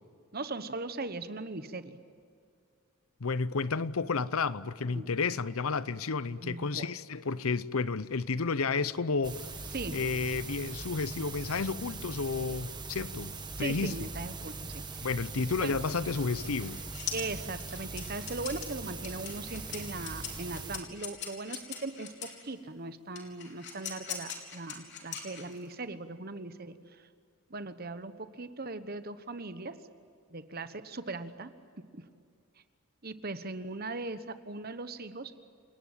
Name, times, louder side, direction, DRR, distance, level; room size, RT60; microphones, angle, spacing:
voice 1, 0.3-2.0 4.9-5.1 6.4-7.0 9.7-10.0 13.6-15.1 15.6-15.8 17.1-27.1 27.5-29.8 30.3-31.5 31.8-32.0 33.0-35.4, right 3 dB, 45° right, 1.2 m, -39 dB
voice 2, 3.2-9.4 9.9-14.1 15.0-16.8, left 4 dB, 75° left, 0.8 m, -31 dB
sound 1, 9.2-20.8, right 3 dB, 20° right, 1.5 m, -41 dB
sound 2, 16.2-22.4 23.2-25.8, left 7 dB, 55° left, 4.0 m, -41 dB
29.0 x 19.0 x 9.0 m
head